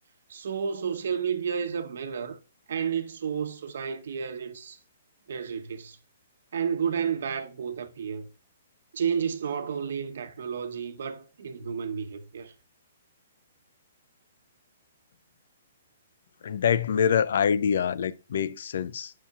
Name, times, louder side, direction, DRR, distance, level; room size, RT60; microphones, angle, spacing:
voice 1, 0.3-2.4 2.7-4.8 5.3-6.0 6.5-8.3 8.9-12.5, right 7 dB, 70° right, 1.0 m, -31 dB
voice 2, 16.4-19.1, left 7 dB, 65° left, 0.5 m, -25 dB
9.9 x 5.6 x 2.4 m
hypercardioid pair, 145°, 0 cm